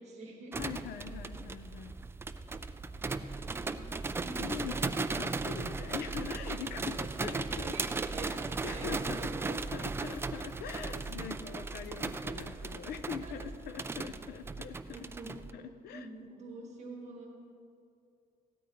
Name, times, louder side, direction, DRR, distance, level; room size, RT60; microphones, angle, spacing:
voice 1, 0.0-0.6 3.3-4.9 6.4-6.5 7.2-8.3 8.7-9.3 12.8-12.9 13.2-13.3 14.8-15.3 15.9-17.3, right 3 dB, 45° right, 0 dB, 1.6 m, -47 dB
sound 1, 0.5-15.5, right 3 dB, 15° right, 0.3 m, -37 dB
voice 2, 0.6-2.0 4.4-7.8 8.2-15.0 15.5-16.1, left 8 dB, 90° left, 11 dB, 0.7 m, -43 dB
sound 2, 8.3-8.4 8.8-12.6 12.9-15.0, left 3 dB, 65° left, 1.6 m, -56 dB
16.5 x 13.0 x 3.0 m, 2.5 s
cardioid pair, 145°, 15 cm